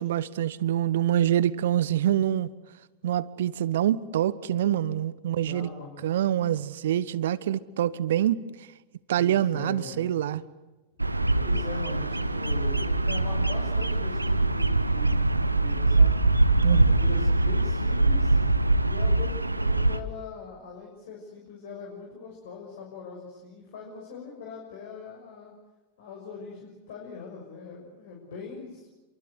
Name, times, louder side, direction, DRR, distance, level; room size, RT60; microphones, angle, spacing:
voice 1, 0.0-2.5 3.0-5.7 6.0-8.4 9.1-10.4 16.6-16.8, right 11 dB, 60° right, 1.1 m, -25 dB
voice 2, 5.2-6.0 9.2-10.1 11.3-16.2 16.6-18.4 18.9-25.5 26.0-28.9, left 5 dB, 55° left, 6.4 m, -41 dB
Bird vocalization bird call bird song, 11.0-20.0, right 2 dB, 85° right, 1.1 m, -23 dB
28.5 x 24.0 x 8.1 m
figure-of-eight pair, 90°, 0 cm